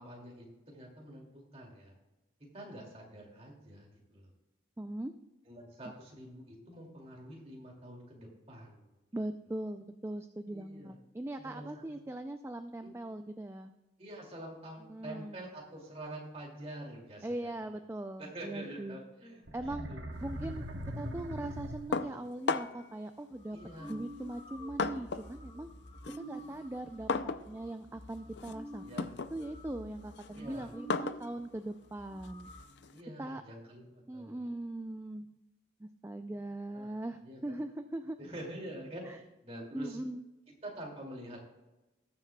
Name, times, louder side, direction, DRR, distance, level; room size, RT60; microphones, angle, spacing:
voice 1, 0.0-1.9 2.5-4.3 5.5-8.9 10.5-11.0 11.4-11.8 12.8-12.9 14.0-17.7 18.2-20.1 23.5-24.0 26.0-26.5 28.8-29.1 30.3-30.7 32.9-34.5 36.7-36.9 37.2-37.6 38.2-40.0 40.6-41.4, right 1 dB, 30° right, -2 dB, 2.4 m, -47 dB
voice 2, 4.8-5.1 9.1-13.7 14.9-15.4 17.2-19.0 19.5-19.9 20.2-20.7 21.0-23.6 23.8-25.7 26.2-32.5 33.2-33.4 34.1-35.3 35.8-38.2 39.0-39.2 39.7-40.2, right 1 dB, 15° right, 7 dB, 0.3 m, -40 dB
sound 1, 19.5-22.3, equal, 75° right, 1.2 m, -41 dB
sound 2, 21.9-22.9 23.8-25.4 25.7-33.0, left 4 dB, 60° left, 0.4 m, -37 dB
sound 3, 23.3-31.2 31.5-31.6 31.9-32.6, right 1 dB, 25° left, 1.3 m, -49 dB
19.0 x 7.3 x 2.3 m, 1.1 s
head